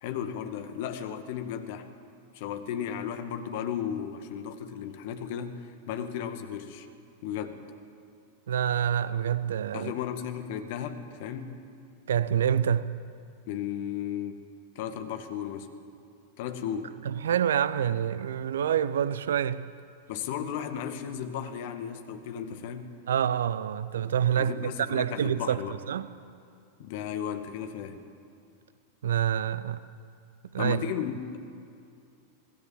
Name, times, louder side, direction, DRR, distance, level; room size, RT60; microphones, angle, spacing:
voice 1, 0.0-1.9 2.3-6.9 7.2-7.6 9.7-11.6 13.5-14.4 14.8-15.7 16.4-17.0 20.1-22.9 24.4-25.8 26.8-28.0 30.6-31.4, left 9 dB, 50° left, 2.1 m, -35 dB
voice 2, 8.5-9.9 12.1-12.9 17.0-19.6 23.1-24.5 24.9-25.6 25.9-26.1 29.0-29.8 30.5-30.8, right 9 dB, 65° right, 0.8 m, -27 dB
25.5 x 18.0 x 7.6 m
figure-of-eight pair, 90°, 0 cm